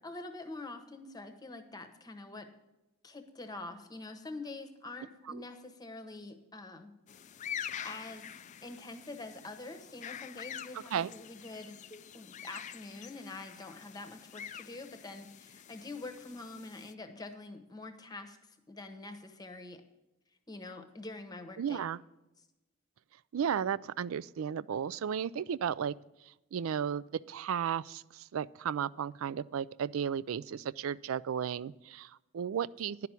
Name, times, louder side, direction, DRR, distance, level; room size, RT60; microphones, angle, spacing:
voice 1, 0.0-2.5 3.0-6.9 7.8-8.3 8.6-18.4 18.7-19.8 20.5-21.8, left 2 dB, 20° left, 7 dB, 1.0 m, -45 dB
sound 1, 7.1-16.9, left 9 dB, 35° left, 0.3 m, -46 dB
voice 2, 21.6-22.0 23.3-25.9 26.5-33.1, right 8 dB, 70° right, 20 dB, 0.3 m, -34 dB
10.5 x 5.9 x 8.2 m, 0.98 s
head